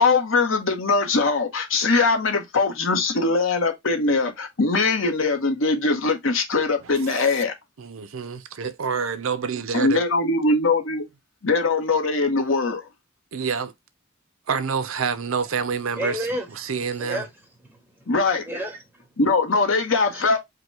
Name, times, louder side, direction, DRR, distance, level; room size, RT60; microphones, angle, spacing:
voice 1, 0.0-7.5 9.7-11.0 11.4-12.9 18.1-18.5 19.2-20.4, left 3 dB, 70° left, 1.0 m, -21 dB
voice 2, 6.8-7.4 7.8-10.0 13.3-13.7 14.5-17.3, right 5 dB, 85° right, 0.6 m, -28 dB
voice 3, 16.0-16.5 17.0-17.3 17.6-18.1 18.5-19.0 20.0-20.3, equal, 10° right, 1.3 m, -31 dB
5.0 x 2.2 x 4.4 m
head